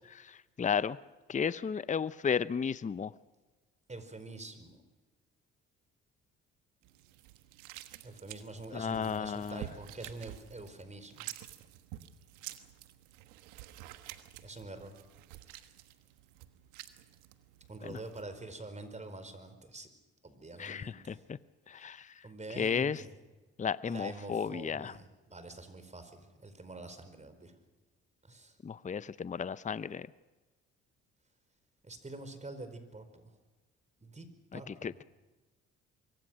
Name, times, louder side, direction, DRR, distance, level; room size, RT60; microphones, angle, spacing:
voice 1, 0.1-1.0 1.3-3.1 8.7-9.6 17.8-18.0 20.6-21.4 21.7-22.1 22.6-23.0 23.6-25.0 28.6-30.1 34.5-35.0, left 6 dB, 25° left, 17 dB, 0.7 m, -34 dB
voice 2, 3.9-4.8 8.0-11.3 14.4-15.0 17.7-19.9 20.2-21.2 21.8-21.9 22.2-23.1 23.8-27.5 28.3-28.5 31.8-33.3 34.0-34.9, right 2 dB, 25° right, 10 dB, 4.8 m, -46 dB
sound 1, 6.8-18.2, right 14 dB, 85° right, 1.4 m, -50 dB
24.5 x 23.5 x 6.3 m, 1.2 s
supercardioid pair, 65°, 29 cm